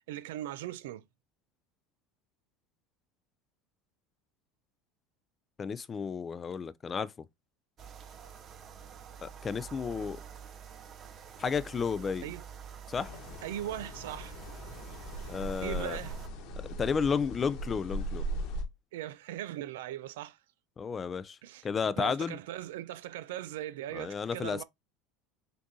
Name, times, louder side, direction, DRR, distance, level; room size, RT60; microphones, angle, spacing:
voice 1, 0.1-1.0 12.2-12.4 13.4-14.3 15.6-16.2 18.9-20.4 21.4-21.7 22.0-24.6, right 13 dB, 85° right, 0.4 m, -39 dB
voice 2, 5.6-7.3 9.2-10.2 11.4-12.3 12.9-13.1 15.3-16.0 16.8-18.3 20.8-22.4 23.9-24.6, left 6 dB, 25° left, 0.3 m, -32 dB
sound 1, 7.8-16.3, right 7 dB, 40° right, 0.6 m, -48 dB
sound 2, 12.9-18.6, right 1 dB, 65° left, 1.2 m, -39 dB
6.1 x 2.6 x 2.6 m
supercardioid pair, 110°, 0 cm